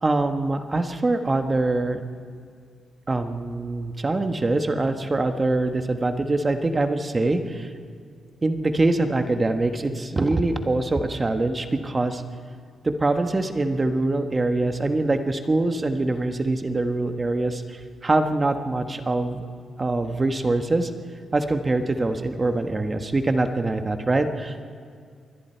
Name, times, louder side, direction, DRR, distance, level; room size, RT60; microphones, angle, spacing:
voice 1, 0.0-2.0 3.1-7.7 8.4-12.2 12.8-19.5 19.8-20.9 21.3-24.6, right 2 dB, 25° right, 7 dB, 1.3 m, -24 dB
27.0 x 21.0 x 4.6 m, 2.2 s
cardioid pair, 105°, 0 cm